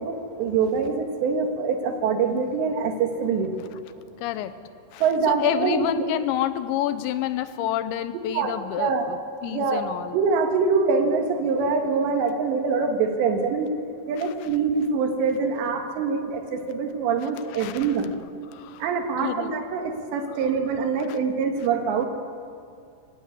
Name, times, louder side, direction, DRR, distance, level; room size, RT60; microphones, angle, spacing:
voice 1, 0.0-3.6 5.0-6.1 8.3-9.1 9.4-9.8 10.1-13.7 14.1-18.1 18.8-22.1, right 5 dB, 75° right, 4 dB, 3.9 m, -24 dB
voice 2, 4.2-4.6 4.9-9.2 9.4-10.2 14.2-14.3 17.5-17.9 18.5-18.9 19.2-19.5 20.3-20.5 21.1-21.2, left 12 dB, 85° left, 12 dB, 3.1 m, -29 dB
24.5 x 15.5 x 9.6 m, 2.4 s
omnidirectional pair, 5.2 m